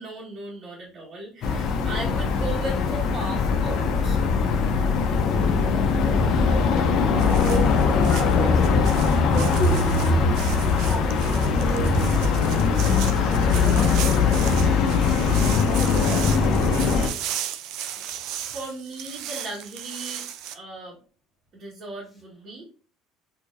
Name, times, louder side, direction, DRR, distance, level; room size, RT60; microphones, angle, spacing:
voice 1, 0.0-4.3 18.4-20.3 20.5-21.0 21.5-22.6, right 2 dB, 45° right, 1.3 m, -36 dB
sound 1, 1.4-17.1, left 5 dB, 60° left, 0.6 m, -21 dB
voice 2, 4.9-5.9 6.3-16.8, right 1 dB, 5° left, 1.7 m, -36 dB
sound 2, 7.2-20.5, right 10 dB, 70° right, 0.4 m, -36 dB
4.3 x 2.8 x 2.5 m
supercardioid pair, 105°, 0 cm